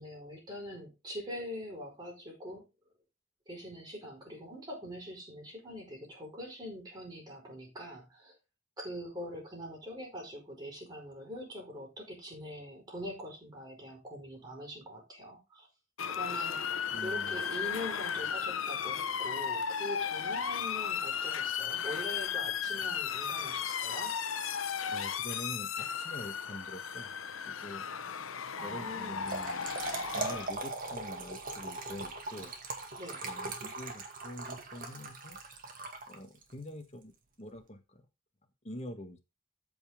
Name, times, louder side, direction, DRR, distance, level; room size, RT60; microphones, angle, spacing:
voice 1, 0.0-2.6 3.5-8.4 8.8-15.7 16.1-16.6 17.0-24.2 28.6-29.3 33.0-33.2, equal, 20° right, -1 dB, 5.0 m, -43 dB
Motor vehicle (road) / Siren, 16.0-30.5, left 7 dB, 80° left, 0.8 m, -35 dB
voice 2, 16.9-17.4 24.9-27.1 27.5-27.8 28.6-29.7 30.1-32.5 33.2-35.4 36.1-37.1 37.4-38.0 38.6-39.2, left 1 dB, 30° left, 5 dB, 1.6 m, -45 dB
Trickle dribble / Fill (with liquid), 29.0-36.5, right 2 dB, 45° right, 2.1 m, -40 dB
14.0 x 5.6 x 3.7 m, 0.25 s
head